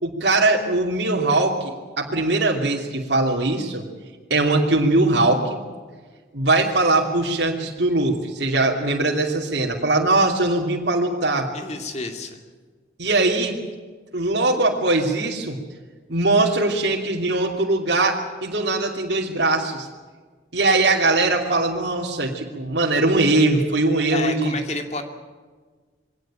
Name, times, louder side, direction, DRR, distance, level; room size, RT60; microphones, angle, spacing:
voice 1, 0.0-3.8 4.3-5.6 6.3-11.5 13.0-13.6 14.1-15.6 16.1-19.9 20.5-24.5, right 2 dB, 70° right, -2 dB, 2.8 m, -21 dB
voice 2, 11.5-12.4 24.1-25.0, left 3 dB, 40° left, 5 dB, 2.5 m, -30 dB
23.0 x 17.5 x 9.0 m, 1.4 s
head